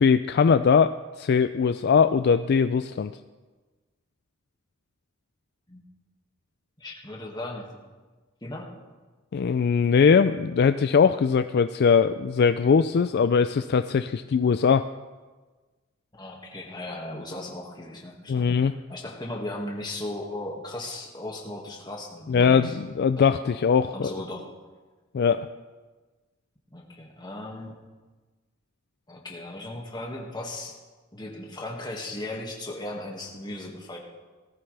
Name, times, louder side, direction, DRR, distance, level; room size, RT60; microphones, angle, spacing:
voice 1, 0.0-3.1 9.3-14.8 18.3-18.7 22.3-24.1 25.1-25.5, left 6 dB, 50° left, 11 dB, 0.3 m, -21 dB
voice 2, 6.8-7.7 8.4-8.7 16.2-18.5 18.9-22.8 23.2-23.6 23.9-24.5 26.7-27.7 29.1-30.7 31.1-34.0, left 1 dB, 20° left, -1 dB, 2.0 m, -37 dB
18.5 x 13.5 x 3.4 m, 1.3 s
head